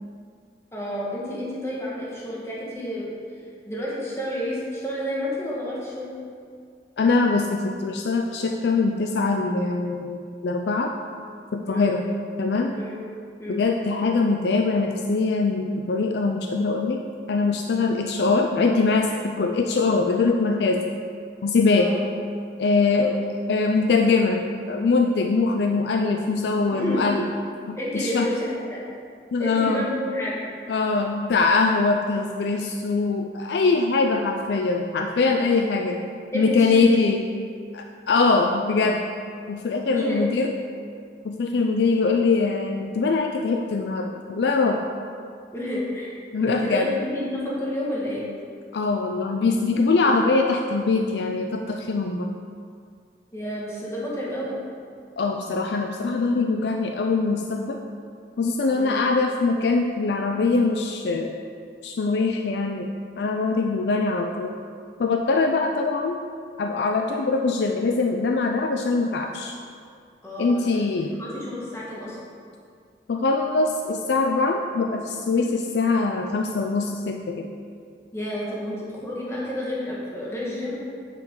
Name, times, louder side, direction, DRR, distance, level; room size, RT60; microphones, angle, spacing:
voice 1, 0.7-3.1 3.6-6.1 11.6-11.9 12.8-13.0 13.4-13.6 21.7-22.0 22.9-23.1 26.7-27.0 27.8-28.8 29.4-30.4 36.3-36.8 39.9-40.4 45.5-46.1 46.5-48.2 50.0-50.1 53.3-54.6 58.8-59.0 67.1-67.3 70.2-70.6 71.2-72.2 75.3-75.4 78.1-80.7, left 1 dB, 15° left, -6 dB, 1.5 m, -30 dB
voice 2, 7.0-10.9 11.5-12.1 12.4-12.7 13.5-17.0 17.3-20.8 21.4-21.9 22.6-23.2 23.5-27.3 27.7-28.3 29.3-29.9 30.7-36.0 36.3-37.2 37.7-39.0 39.5-40.5 41.2-44.8 46.3-46.9 48.7-52.3 55.2-57.8 58.4-61.3 61.8-64.5 65.0-66.2 66.6-69.6 70.4-71.1 73.1-77.5, left 3 dB, 75° left, 3 dB, 0.4 m, -22 dB
9.0 x 4.9 x 3.8 m, 2.2 s
head